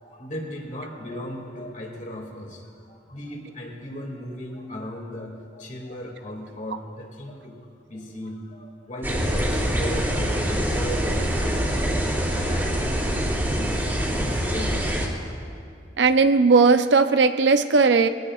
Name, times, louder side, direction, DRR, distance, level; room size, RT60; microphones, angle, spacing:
voice 1, 0.0-7.6 7.9-11.1 11.4-13.8 14.1-15.3, equal, 45° left, 0 dB, 2.3 m, -37 dB
sound 1, 9.0-15.1, equal, 15° right, 2.3 m, -24 dB
voice 2, 16.0-18.1, right 4 dB, 80° right, 9 dB, 0.6 m, -17 dB
21.5 x 18.0 x 2.4 m, 2.4 s
head